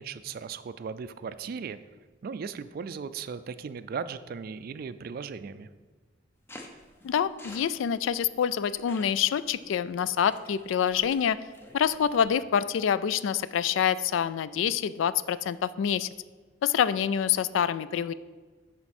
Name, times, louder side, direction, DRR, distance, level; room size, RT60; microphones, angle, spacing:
voice 1, 0.0-1.8 2.2-5.7, right 6 dB, 50° right, 13 dB, 0.3 m, -37 dB
sound 1, 6.5-12.3, left 1 dB, 15° left, 0.7 m, -51 dB
voice 2, 7.0-11.4 11.7-16.1 16.6-18.1, left 8 dB, 85° left, 16 dB, 0.3 m, -26 dB
10.5 x 4.4 x 4.2 m, 1.4 s
head